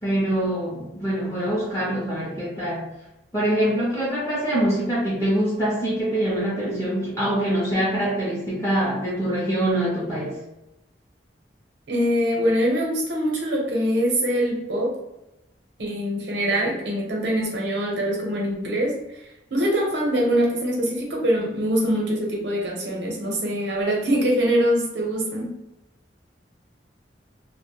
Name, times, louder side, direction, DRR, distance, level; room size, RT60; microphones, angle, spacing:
voice 1, 0.0-2.9 3.3-10.4, right 1 dB, 15° left, -8 dB, 0.5 m, -24 dB
voice 2, 11.9-14.9 15.8-18.9 19.5-25.5, equal, 85° right, -1 dB, 0.7 m, -23 dB
2.1 x 2.1 x 2.8 m, 0.93 s
head